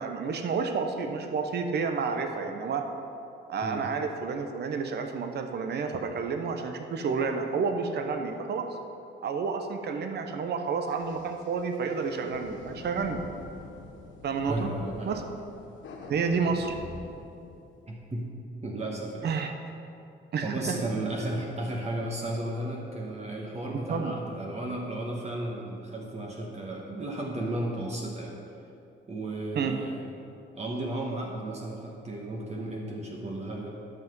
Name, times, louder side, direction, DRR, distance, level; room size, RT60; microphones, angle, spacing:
voice 1, 0.0-2.9 3.5-8.7 9.2-13.2 14.2-14.7 15.0-15.2 16.1-16.8 19.2-19.5 20.3-20.5 23.9-24.1 29.5-29.8, right 5 dB, 55° right, 6 dB, 0.9 m, -30 dB
sound 1, 10.8-18.0, left 3 dB, 70° left, 1.2 m, -46 dB
voice 2, 14.5-15.1 17.9-18.3 18.6-19.3 20.4-28.4 29.1-30.0 30.5-33.8, right 1 dB, 35° right, -1 dB, 1.3 m, -34 dB
11.0 x 5.9 x 5.4 m, 2.7 s
cardioid pair, 90°, 20 cm